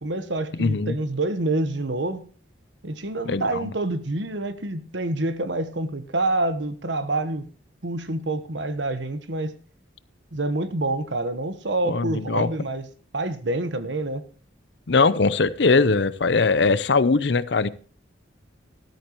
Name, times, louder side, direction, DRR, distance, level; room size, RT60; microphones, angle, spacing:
voice 1, 0.0-2.3 2.8-7.5 7.8-9.5 10.3-12.9 13.1-14.2, right 2 dB, 70° right, 1.2 m, -27 dB
voice 2, 0.6-1.0 3.3-3.7 11.9-12.5 14.9-17.7, left 4 dB, 60° left, 0.7 m, -21 dB
13.5 x 13.5 x 3.0 m
head